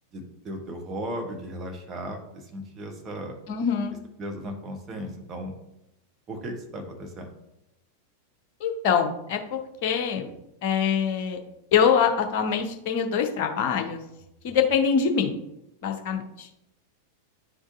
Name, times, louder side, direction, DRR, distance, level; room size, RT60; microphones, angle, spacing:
voice 1, 0.1-3.3 4.2-5.5 6.3-7.3, equal, 25° right, 2 dB, 1.2 m, -36 dB
voice 2, 3.5-4.0 8.6-10.3 10.6-11.4 11.7-14.0 14.4-15.3 15.8-16.5, left 7 dB, 45° left, 4 dB, 0.8 m, -24 dB
9.7 x 3.6 x 2.7 m, 0.85 s
figure-of-eight pair, 90°, 0 cm